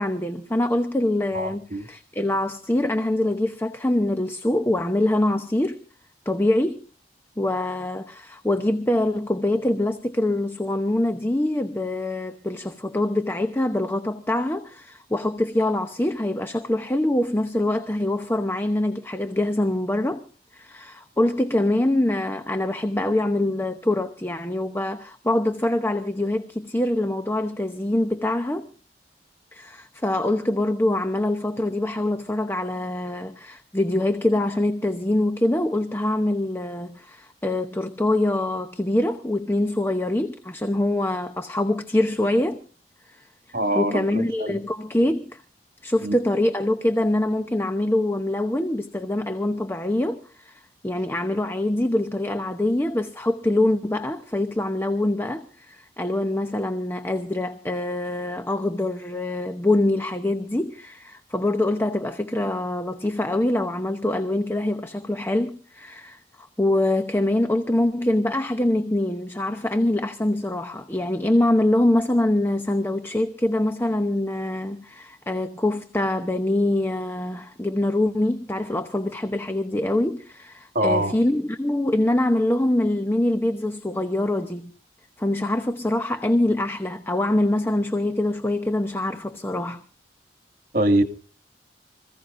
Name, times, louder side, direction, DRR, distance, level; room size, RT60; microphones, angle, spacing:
voice 1, 0.0-5.8 6.3-6.8 7.4-20.3 20.5-28.7 29.5-42.6 43.1-45.4 45.8-84.7 85.2-89.8, left 1 dB, 15° left, 0.9 m, -24 dB
voice 2, 1.3-1.8 43.5-44.6 46.0-46.2 80.7-81.1 90.7-91.0, right 1 dB, 55° right, 2.4 m, -23 dB
26.5 x 16.0 x 2.7 m
head